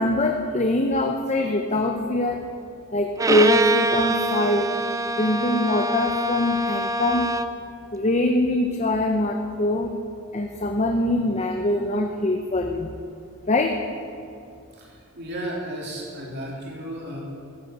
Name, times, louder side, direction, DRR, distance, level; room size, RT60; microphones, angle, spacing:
voice 1, 0.0-2.5 2.9-4.7 5.2-7.3 7.9-10.0 10.3-12.9 13.5-13.8, left 1 dB, 30° left, 3 dB, 0.7 m, -23 dB
Bowed string instrument, 3.2-7.7, right 2 dB, 15° right, 0.4 m, -25 dB
voice 2, 14.7-17.2, right 1 dB, 50° right, -3 dB, 3.3 m, -34 dB
14.0 x 10.0 x 8.0 m, 2.4 s
head